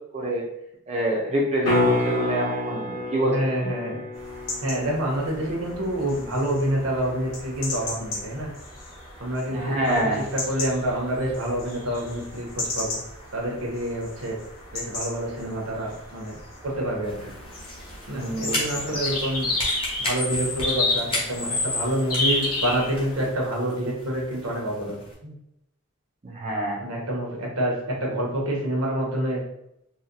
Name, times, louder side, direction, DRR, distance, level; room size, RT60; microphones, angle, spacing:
voice 1, 0.1-0.5 0.9-3.7 9.5-10.2 18.1-18.9 26.2-26.8, right 1 dB, 30° right, -3 dB, 0.5 m, -26 dB
sound 1, 1.6-7.7 12.3-12.4, left 1 dB, 60° left, 1.5 m, -29 dB
voice 2, 3.2-4.0 4.6-8.5 9.2-9.9 10.3-12.5 12.8-13.0 13.3-14.4 14.7-16.4 16.6-17.2 18.1-19.5 20.0-25.3 26.8-27.7 28.0-29.4, right 1 dB, 85° right, -2 dB, 1.0 m, -27 dB
sound 2, 4.1-23.3, left 2 dB, 85° left, 1.3 m, -32 dB
sound 3, 17.0-25.1, left 1 dB, 25° left, 0.8 m, -35 dB
4.0 x 2.2 x 2.6 m, 0.79 s
head